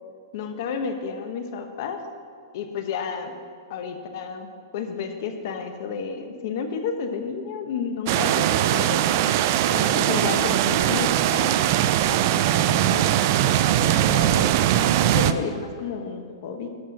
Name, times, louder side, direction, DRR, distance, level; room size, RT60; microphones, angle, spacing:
voice 1, 0.3-2.0 2.5-3.3 3.7-4.5 4.7-9.2 9.7-11.6 12.0-16.7, left 6 dB, 45° left, 7 dB, 0.9 m, -32 dB
sound 1, 8.1-15.3, right 12 dB, 40° right, 0.3 m, -21 dB
11.5 x 4.4 x 6.3 m, 2.2 s
hypercardioid pair, 165°, 2 cm